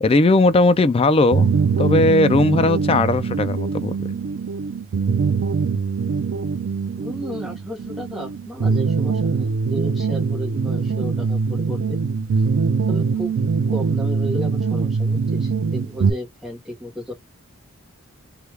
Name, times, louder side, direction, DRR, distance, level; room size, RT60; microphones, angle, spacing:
voice 1, 0.0-1.5 1.8-3.9, left 2 dB, 25° left, 0.3 m, -17 dB
sound 1, 1.3-16.1, right 5 dB, 60° right, 0.3 m, -22 dB
voice 2, 7.0-12.0 12.4-12.5 12.9-17.1, equal, ahead, 0.8 m, -34 dB
3.2 x 2.3 x 3.1 m
head